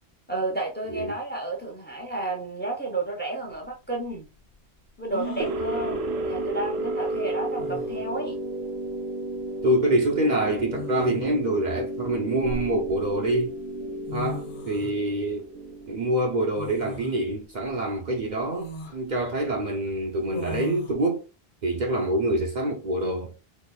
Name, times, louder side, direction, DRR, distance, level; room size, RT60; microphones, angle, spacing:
voice 1, 0.3-4.3 5.0-8.4, right 2 dB, 10° left, 0.9 m, -31 dB
sound 1, 3.5-3.6 5.1-5.6 7.1-7.2 7.6-8.1 9.4-9.6 10.7-11.5 12.1-13.1 13.8-13.9 14.1-14.9 16.6-17.2 17.7-17.8 18.5-19.0 20.3-20.9, left 2 dB, 90° left, 1.1 m, -37 dB
sound 2, 5.4-16.3, right 1 dB, 85° right, 0.9 m, -32 dB
voice 2, 9.6-13.5 14.1-15.5 15.9-21.3 21.6-23.3, right 1 dB, 50° right, 0.8 m, -26 dB
4.2 x 2.9 x 2.3 m
omnidirectional pair, 1.0 m